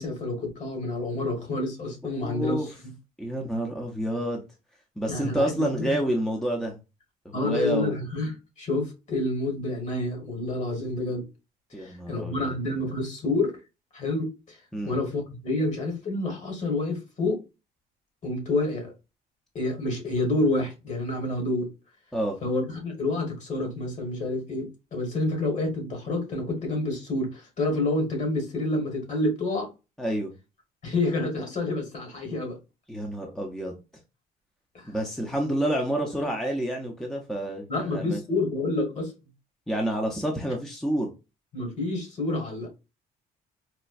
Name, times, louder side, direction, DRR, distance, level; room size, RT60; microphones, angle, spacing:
voice 1, 0.0-2.6 5.1-5.9 7.3-11.3 11.8-13.6 13.9-14.6 14.8-17.4 18.2-18.9 19.5-21.7 22.4-29.7 30.8-32.6 34.7-34.9 37.7-39.1 41.5-42.7, left 2 dB, 45° left, 1.5 m, -28 dB
voice 2, 2.0-2.7 3.2-4.4 5.0-6.8 7.2-8.0 11.7-12.6 14.7-15.0 22.1-22.4 30.0-30.3 32.9-33.8 34.8-38.2 39.7-41.1, right 1 dB, 5° left, 0.6 m, -29 dB
4.2 x 2.2 x 2.4 m
cardioid pair, 110°, 17 cm